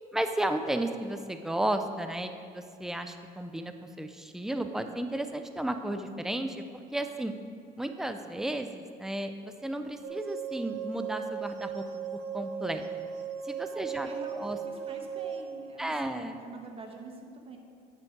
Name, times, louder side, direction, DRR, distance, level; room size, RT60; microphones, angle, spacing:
voice 1, 0.1-3.7 4.0-6.6 6.9-7.3 7.8-9.3 9.6-11.8 12.1-12.8 13.4-14.6 15.8-16.4, right 1 dB, 5° right, 7 dB, 0.5 m, -33 dB
sound 1, 10.0-15.4, right 7 dB, 90° right, 0.9 m, -37 dB
voice 2, 13.7-17.6, right 2 dB, 35° right, 3 dB, 1.3 m, -46 dB
9.6 x 7.2 x 4.6 m, 2.3 s
cardioid pair, 110°, 17 cm